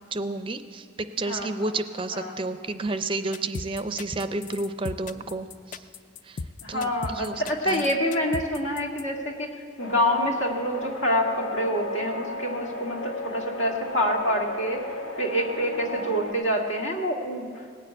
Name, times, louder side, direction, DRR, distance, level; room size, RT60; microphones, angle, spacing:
voice 1, 0.1-0.9 1.2-5.8 6.2-6.4 6.7-7.9, right 2 dB, 25° right, 10 dB, 0.4 m, -31 dB
sound 1, 3.3-9.0, left 4 dB, 40° left, 0.3 m, -36 dB
voice 2, 6.6-9.5 9.8-14.8 15.2-17.5, equal, 70° left, 1 dB, 1.9 m, -26 dB
sound 2, 9.8-16.3, left 1 dB, 90° left, 1.7 m, -35 dB
19.0 x 6.7 x 8.6 m, 2.5 s
head